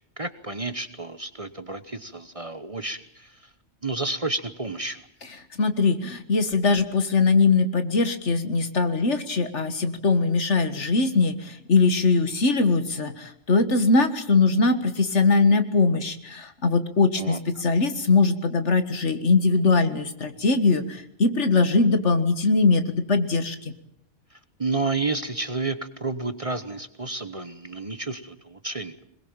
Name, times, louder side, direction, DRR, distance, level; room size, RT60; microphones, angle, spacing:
voice 1, 0.2-3.5 3.8-5.0 17.2-17.4 24.3-29.0, right 3 dB, 30° right, 11 dB, 1.1 m, -31 dB
voice 2, 5.6-23.7, left 3 dB, 65° left, 9 dB, 2.0 m, -21 dB
21.5 x 21.5 x 8.8 m, 0.70 s
omnidirectional pair, 1.3 m